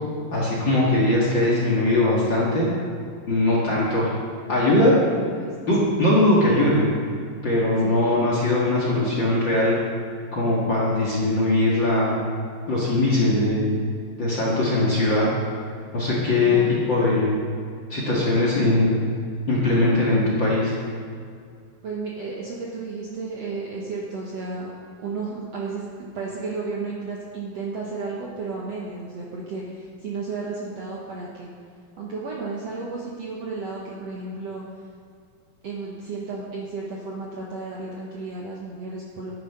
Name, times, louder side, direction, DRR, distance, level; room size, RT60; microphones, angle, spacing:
voice 1, 0.3-2.7 3.3-4.1 4.5-5.0 5.7-6.9 7.4-9.8 10.3-12.2 12.7-13.7 14.2-15.3 15.9-17.4 17.9-19.0 19.5-20.7, left 2 dB, 40° left, -5 dB, 1.9 m, -20 dB
voice 2, 5.1-5.5 7.8-8.0 16.4-16.9 21.8-24.7 25.0-31.5 32.0-34.6 35.6-39.3, right 4 dB, 60° right, -4 dB, 1.7 m, -33 dB
11.0 x 10.0 x 5.5 m, 2.2 s
omnidirectional pair, 4.4 m